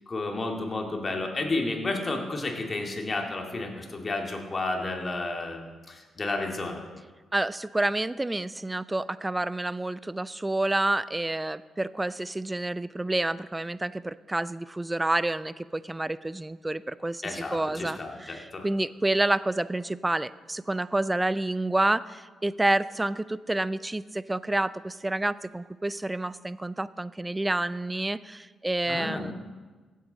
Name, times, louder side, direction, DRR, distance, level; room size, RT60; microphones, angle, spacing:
voice 1, 0.1-6.8 17.2-18.7 28.9-29.3, left 2 dB, 40° left, 2 dB, 2.3 m, -32 dB
voice 2, 7.3-29.3, right 2 dB, 20° right, 18 dB, 0.4 m, -29 dB
15.5 x 8.4 x 4.2 m, 1.3 s
hypercardioid pair, 45°, 0 cm